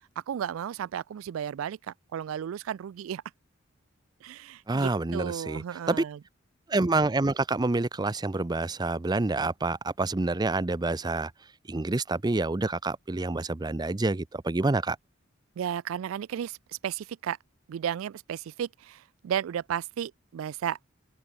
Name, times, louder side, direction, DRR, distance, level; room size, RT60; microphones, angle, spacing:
voice 1, 0.3-3.2 4.2-6.2 15.6-16.6 16.8-17.4 17.7-19.0 19.2-20.8, right 9 dB, 85° right, 0.3 m, -33 dB
voice 2, 4.7-6.0 6.7-11.3 11.7-15.0, right 2 dB, 20° right, 0.5 m, -27 dB
open air
head